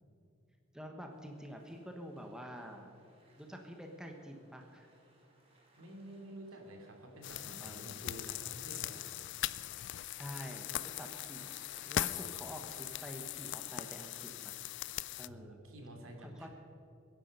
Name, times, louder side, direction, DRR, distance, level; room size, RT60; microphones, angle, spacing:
voice 1, 0.7-2.9 3.4-4.9 7.6-8.0 10.2-11.5 11.9-14.6 15.2-15.6 16.2-16.5, equal, 5° right, 2 dB, 1.2 m, -47 dB
sound 1, 1.1-14.4, right 2 dB, 30° right, 3.0 m, -66 dB
voice 2, 5.8-9.1 15.2-16.5, right 1 dB, 75° right, 2 dB, 2.9 m, -50 dB
sound 2, 7.2-15.3, left 12 dB, 60° left, 0.4 m, -40 dB
23.0 x 10.5 x 5.5 m, 2.5 s
head